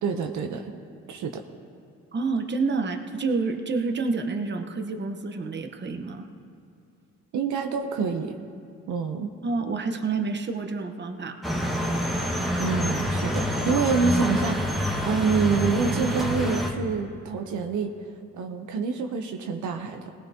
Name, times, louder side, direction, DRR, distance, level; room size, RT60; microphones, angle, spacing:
voice 1, 0.0-0.7 1.1-1.4 7.3-8.4 8.9-9.3 12.6-14.7 15.0-17.9 18.3-20.1, right 5 dB, 75° right, 5 dB, 0.9 m, -27 dB
voice 2, 2.1-6.2 9.4-11.4, right 4 dB, 35° right, 5 dB, 1.1 m, -28 dB
sound 1, 11.4-16.7, equal, ahead, 1.6 m, -27 dB
18.5 x 17.0 x 2.9 m, 2.4 s
cardioid pair, 90°, 30 cm